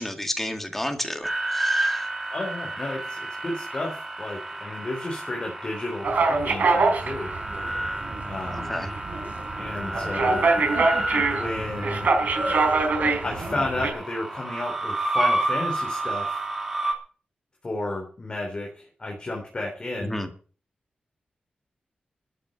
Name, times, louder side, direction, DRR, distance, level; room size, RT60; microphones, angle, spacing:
voice 1, 0.0-2.0 8.7-8.9 20.0-20.3, left 1 dB, 10° left, 5 dB, 2.1 m, -31 dB
sound 1, 1.2-16.9, right 1 dB, 10° right, 2.9 m, -30 dB
voice 2, 2.3-7.4 8.2-8.7 9.6-10.5 11.2-12.1 13.2-16.4 17.6-20.2, left 2 dB, 30° left, 0 dB, 3.6 m, -32 dB
sound 2, 6.0-13.9, right 3 dB, 65° right, 4.1 m, -25 dB
13.5 x 8.8 x 7.8 m, 0.41 s
wide cardioid pair, 180°, 3 cm